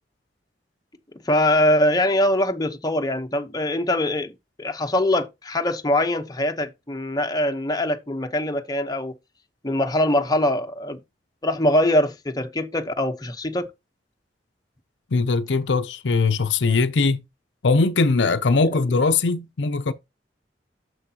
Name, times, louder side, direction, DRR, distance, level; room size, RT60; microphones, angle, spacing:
voice 1, 1.3-4.3 4.6-9.1 9.6-11.0 11.4-13.7, left 1 dB, 20° left, 0.9 m, -22 dB
voice 2, 15.1-17.2 17.6-19.9, left 4 dB, 75° left, 0.6 m, -20 dB
9.7 x 7.0 x 2.8 m
head